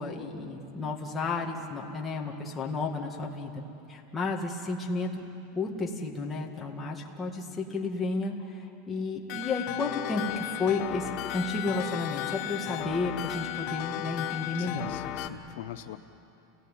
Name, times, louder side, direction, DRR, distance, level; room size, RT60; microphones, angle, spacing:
voice 1, 0.0-3.6 3.9-5.2 5.6-14.9, left 3 dB, 10° left, -1 dB, 2.0 m, -32 dB
sound 1, 9.3-15.3, left 13 dB, 40° left, 1.3 m, -35 dB
voice 2, 14.5-16.0, left 14 dB, 65° left, 9 dB, 0.7 m, -43 dB
30.0 x 18.5 x 9.3 m, 2.9 s
supercardioid pair, 170°, 0 cm